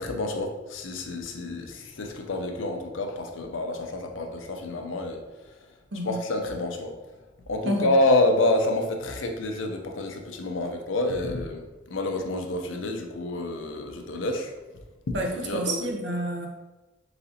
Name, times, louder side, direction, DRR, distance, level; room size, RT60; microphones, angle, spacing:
voice 1, 0.0-5.6 6.0-6.9 7.5-14.5 15.1-15.8, left 2 dB, 85° left, 4 dB, 0.6 m, -28 dB
voice 2, 15.5-16.5, right 1 dB, 65° right, 2 dB, 0.7 m, -28 dB
4.1 x 4.0 x 2.8 m, 1.1 s
head